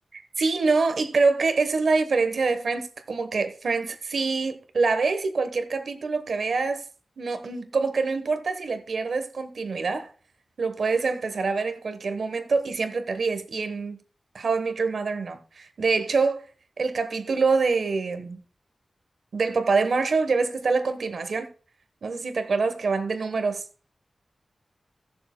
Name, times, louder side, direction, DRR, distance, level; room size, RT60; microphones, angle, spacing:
voice 1, 0.4-6.8 7.2-10.1 10.6-14.0 14.3-16.5 16.8-18.4 19.3-21.5 22.0-23.6, right 4 dB, 85° right, 1.1 m, -25 dB
17.5 x 6.7 x 2.2 m
wide cardioid pair, 95°, 0 cm